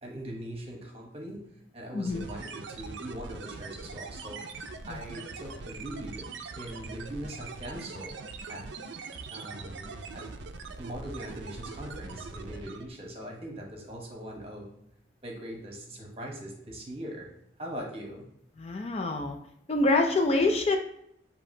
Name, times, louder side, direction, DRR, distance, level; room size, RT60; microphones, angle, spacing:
voice 1, 0.0-4.4 4.9-6.2 6.5-8.1 8.5-8.7 9.3-10.2 10.8-14.7 15.2-17.3 17.6-18.3, right 1 dB, 30° right, 0 dB, 0.9 m, -41 dB
voice 2, 1.9-2.3 4.9-5.0 18.6-19.4 19.7-20.8, left 2 dB, 35° left, 4 dB, 0.3 m, -26 dB
sound 1, 2.1-12.9, right 4 dB, 70° right, 0.4 m, -42 dB
6.9 x 2.8 x 2.6 m, 0.74 s
head